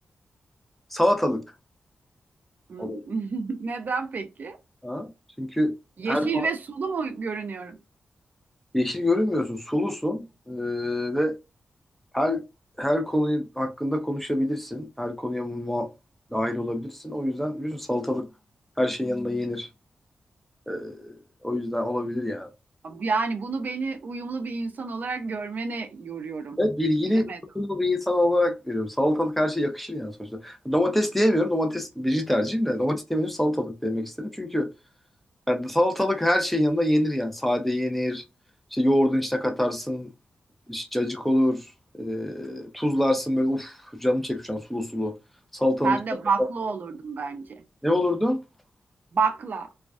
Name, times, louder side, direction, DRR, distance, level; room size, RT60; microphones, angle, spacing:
voice 1, 0.9-1.4 2.8-3.0 4.8-5.1 5.4-5.7 6.1-6.5 8.7-11.4 12.1-12.4 12.8-15.9 16.3-18.2 18.8-19.7 20.7-21.2 21.4-22.5 26.6-34.7 35.5-38.2 38.7-40.1 40.7-41.7 41.9-45.1 45.5-46.0 47.8-48.4, left 1 dB, 5° left, 0.6 m, -25 dB
voice 2, 2.7-4.6 6.0-7.8 22.8-26.6 27.1-27.4 45.8-47.6 49.1-49.7, right 4 dB, 65° right, 0.4 m, -29 dB
2.3 x 2.3 x 2.3 m
cardioid pair, 50°, 3 cm